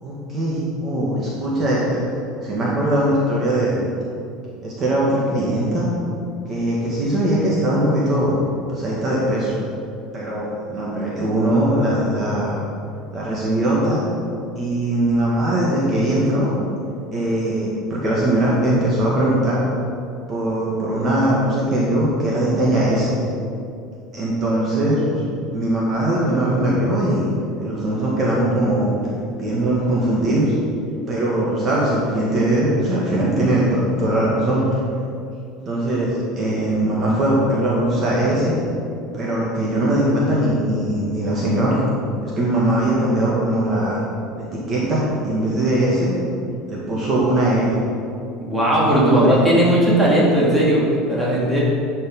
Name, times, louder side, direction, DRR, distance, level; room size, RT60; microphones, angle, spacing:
voice 1, 0.0-2.0 2.4-3.8 4.6-5.9 6.5-8.4 8.7-9.6 10.1-12.6 13.1-14.1 14.6-16.5 17.1-19.6 20.3-23.1 24.1-25.2 25.5-27.3 27.6-29.0 29.4-30.5 31.1-34.8 35.7-38.5 39.1-41.8 42.2-44.0 44.4-46.1 46.7-47.7 48.9-49.4, right 1 dB, 25° right, -6 dB, 1.8 m, -20 dB
voice 2, 48.4-51.6, right 1 dB, 5° right, -7 dB, 2.2 m, -17 dB
11.0 x 5.6 x 5.4 m, 2.4 s
cardioid pair, 160°, 0 cm